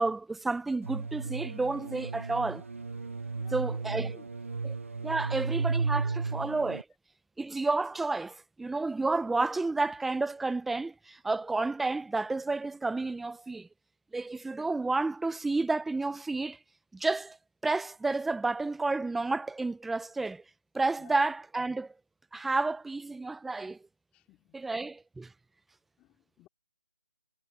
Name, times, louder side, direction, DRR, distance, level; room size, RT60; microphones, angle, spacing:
voice 1, 0.0-2.6 3.5-4.1 4.6-4.8 5.0-6.8 7.4-13.7 14.1-16.6 16.9-17.4 17.6-20.4 20.7-21.9 22.3-23.8 24.5-25.3, right 3 dB, ahead, 0.6 m, -31 dB
sound 1, 0.8-6.8, right 4 dB, 85° right, 0.5 m, -34 dB
voice 2, 3.3-4.6 5.2-5.6 5.9-6.5 21.0-21.2 24.1-24.6 26.0-26.5, left 16 dB, 15° left, 2.6 m, -57 dB
figure-of-eight pair, 155°, 7 cm